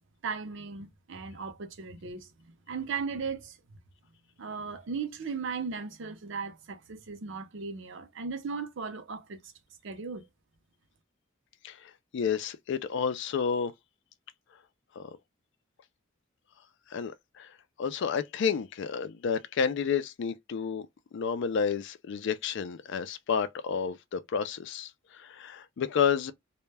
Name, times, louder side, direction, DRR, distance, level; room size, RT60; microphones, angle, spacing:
voice 1, 0.2-2.3 2.7-3.8 4.4-9.4 9.8-10.3, right 5 dB, 70° right, 0.6 m, -37 dB
voice 2, 11.6-13.7 15.0-15.1 16.9-17.5 17.8-20.9 21.1-26.3, left 6 dB, 65° left, 0.4 m, -30 dB
2.2 x 2.1 x 3.2 m
head